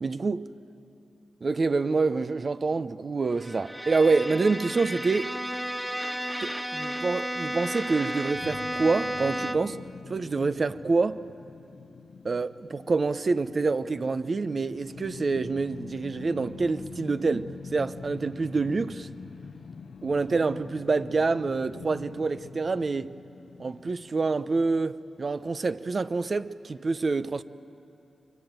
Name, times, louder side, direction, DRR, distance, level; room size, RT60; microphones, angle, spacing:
voice 1, 0.0-0.4 1.4-5.3 6.4-9.8 10.1-11.2 12.2-19.1 20.0-23.1 23.6-27.4, right 4 dB, 50° right, 0.7 m, -27 dB
Bowed string instrument, 3.4-9.8, equal, 5° right, 0.8 m, -33 dB
sound 1, 8.3-25.5, left 5 dB, 75° left, 0.8 m, -45 dB
24.0 x 23.5 x 9.0 m
cardioid pair, 75°, 0 cm